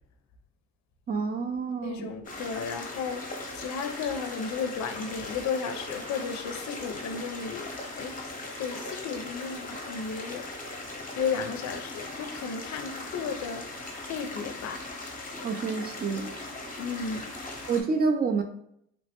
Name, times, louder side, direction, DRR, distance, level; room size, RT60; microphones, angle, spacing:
voice 1, 1.1-2.1 15.4-16.3 17.7-18.4, right 4 dB, 30° right, 6 dB, 0.4 m, -28 dB
voice 2, 1.8-7.7 8.0-8.3 8.6-10.5 11.1-14.8 16.8-17.3, left 6 dB, 70° left, 7 dB, 0.4 m, -34 dB
sound 1, 2.2-17.8, left 2 dB, 25° left, 0.7 m, -39 dB
3.1 x 2.1 x 2.8 m, 0.72 s
cardioid pair, 90°, 30 cm